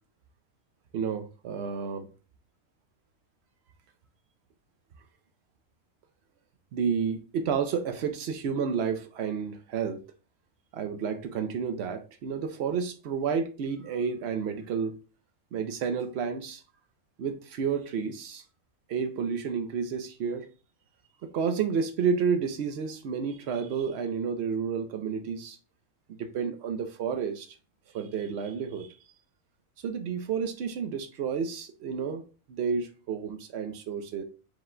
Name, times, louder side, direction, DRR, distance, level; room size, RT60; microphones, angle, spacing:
voice 1, 0.9-2.1 6.7-10.0 10.7-15.0 15.5-16.6 17.2-18.4 18.9-20.5 21.2-25.6 26.1-27.5 27.9-29.0 29.8-32.2 32.5-34.2, right 6 dB, 65° right, 0.6 m, -30 dB
4.9 x 2.1 x 3.7 m
omnidirectional pair, 1.6 m